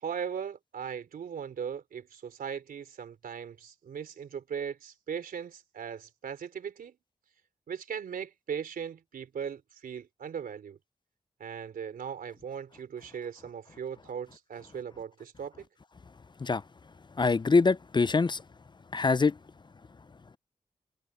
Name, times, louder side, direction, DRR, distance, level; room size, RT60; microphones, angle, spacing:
voice 1, 0.0-7.0 7.7-10.8 11.4-15.7, right 7 dB, 90° right, 3.6 m, -38 dB
voice 2, 17.2-18.4 18.9-19.3, left 4 dB, 30° left, 0.4 m, -24 dB
cardioid pair, 55°, 15 cm